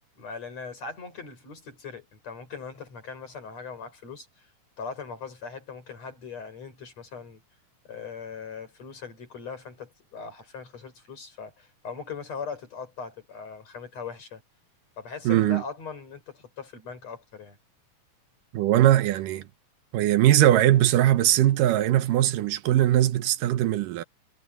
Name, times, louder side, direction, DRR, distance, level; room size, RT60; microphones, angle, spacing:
voice 1, 0.2-4.5 4.8-7.4 7.8-14.4 15.0-17.6, left 5 dB, 55° left, 6.3 m, -40 dB
voice 2, 15.3-15.6 18.5-19.5 19.9-24.0, right 13 dB, 90° right, 2.6 m, -20 dB
omnidirectional pair, 3.7 m